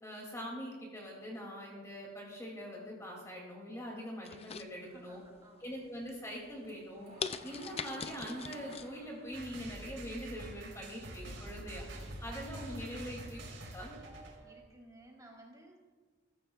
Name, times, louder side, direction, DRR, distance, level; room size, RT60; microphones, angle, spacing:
voice 1, 0.0-5.2 5.6-7.1 7.4-11.9 12.2-13.4 13.7-14.0, equal, 15° left, -2 dB, 2.6 m, -43 dB
sound 1, 4.2-5.3 5.7-6.1 6.6-6.7 7.2-8.9 9.3-9.4, left 6 dB, 30° left, 0.5 m, -41 dB
voice 2, 4.8-5.9 12.3-12.7 14.4-15.8, right 1 dB, 20° right, -2 dB, 3.6 m, -57 dB
sound 2, 6.2-10.8 11.1-12.7, right 2 dB, 50° right, 4.9 m, -54 dB
sound 3, 9.3-14.6, right 1 dB, 85° right, 4.0 m, -46 dB
22.0 x 14.5 x 2.4 m, 1.4 s
head